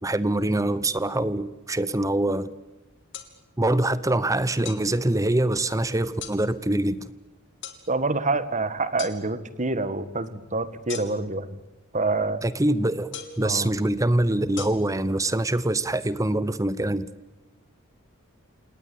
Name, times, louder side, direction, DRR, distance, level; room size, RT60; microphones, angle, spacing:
voice 1, 0.0-2.5 3.6-7.0 12.4-17.1, right 1 dB, 15° right, 16 dB, 0.8 m, -24 dB
sound 1, 3.1-3.3 4.7-4.8 6.2-6.4 7.6-7.8 9.0-9.2 10.9-11.3 13.1-13.4 14.6-14.7, left 9 dB, 60° left, 3.1 m, -37 dB
voice 2, 7.9-11.6 11.9-12.4 13.4-13.7, right 3 dB, 35° right, 13 dB, 1.6 m, -27 dB
29.0 x 19.0 x 8.6 m, 1.0 s
head